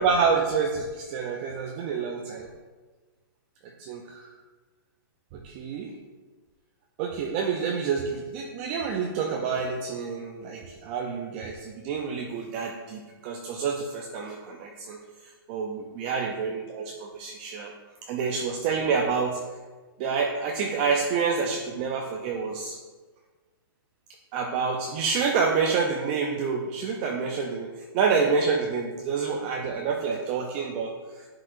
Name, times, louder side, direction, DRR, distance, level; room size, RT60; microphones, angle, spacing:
voice 1, 0.0-2.5 3.6-4.3 5.3-5.9 7.0-15.0 15.5-17.7 18.1-19.4 20.0-22.8 24.3-30.9, right 5 dB, 25° right, 1 dB, 0.4 m, -28 dB
9.8 x 4.8 x 2.5 m, 1.3 s
hypercardioid pair, 160°, 12 cm